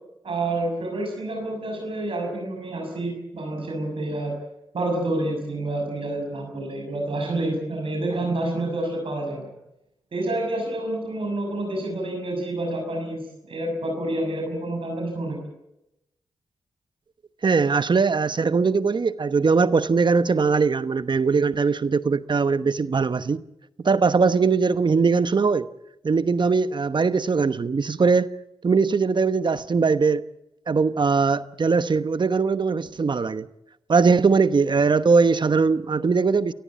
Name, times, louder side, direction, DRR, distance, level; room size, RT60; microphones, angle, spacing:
voice 1, 0.2-4.4 4.7-9.5 10.1-15.4, right 2 dB, 65° right, 6.5 m, -28 dB
voice 2, 17.4-23.4 23.8-25.7 26.0-28.3 28.6-30.2 30.7-33.5 33.9-36.5, right 4 dB, 50° right, 1.1 m, -20 dB
29.5 x 14.5 x 8.5 m
cardioid pair, 45°, 10 cm